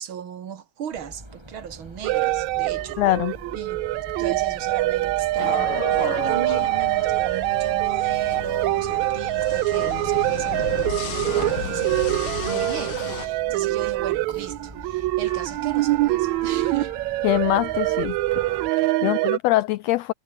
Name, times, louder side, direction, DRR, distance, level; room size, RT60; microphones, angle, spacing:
voice 1, 0.0-3.0 3.5-3.9 4.2-17.0 19.0-19.3, right 8 dB, 50° right, 2.0 m, -37 dB
sound 1, 0.9-18.7, right 1 dB, 10° right, 4.9 m, -43 dB
sound 2, 2.0-19.4, right 18 dB, 75° right, 1.8 m, -24 dB
voice 2, 3.0-3.3 17.2-18.2 18.5-20.1, left 17 dB, 85° left, 1.5 m, -23 dB
sound 3, 5.4-13.3, left 11 dB, 60° left, 1.6 m, -34 dB
omnidirectional pair, 3.5 m